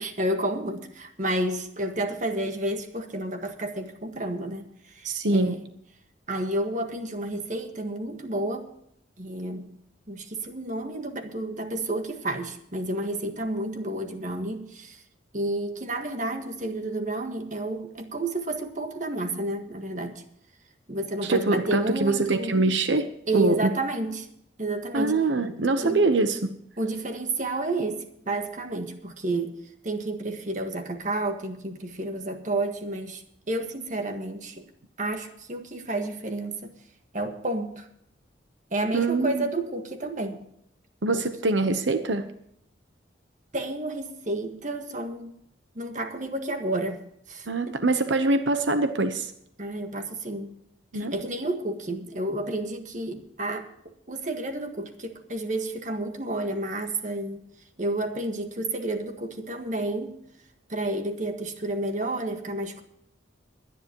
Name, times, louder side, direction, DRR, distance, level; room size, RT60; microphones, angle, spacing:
voice 1, 0.0-5.7 6.3-8.7 9.2-9.7 10.1-15.0 15.3-20.2 20.9-22.6 23.3-24.3 24.6-25.2 25.8-26.0 26.8-29.6 29.8-34.7 35.0-36.7 37.1-37.9 38.7-40.4 41.1-41.3 43.5-45.3 45.7-47.8 49.6-50.5 50.9-57.4 57.8-60.2 60.7-62.8, right 2 dB, 40° right, 6 dB, 1.7 m, -31 dB
voice 2, 5.0-5.6 21.2-23.1 23.3-23.7 24.9-26.5 38.9-39.5 41.0-42.3 47.5-49.3 50.9-51.1, right 2 dB, 85° right, 9 dB, 1.0 m, -24 dB
22.5 x 10.5 x 3.1 m, 0.71 s
head